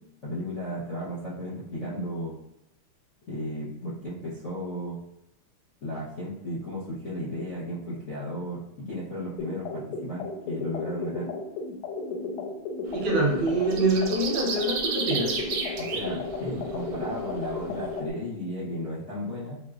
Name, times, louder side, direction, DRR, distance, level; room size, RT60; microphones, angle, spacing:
voice 1, 0.2-2.4 3.3-5.0 5.8-11.3 15.8-19.6, equal, 60° left, -11 dB, 0.7 m, -34 dB
sound 1, 9.4-18.1, left 3 dB, 85° left, 1.5 m, -34 dB
voice 2, 12.9-15.3, right 2 dB, 70° right, -2 dB, 1.5 m, -25 dB
sound 2, 13.0-13.2 13.5-16.2 16.6-16.7, right 5 dB, 85° right, 1.5 m, -32 dB
4.8 x 2.0 x 2.4 m, 0.87 s
omnidirectional pair, 2.4 m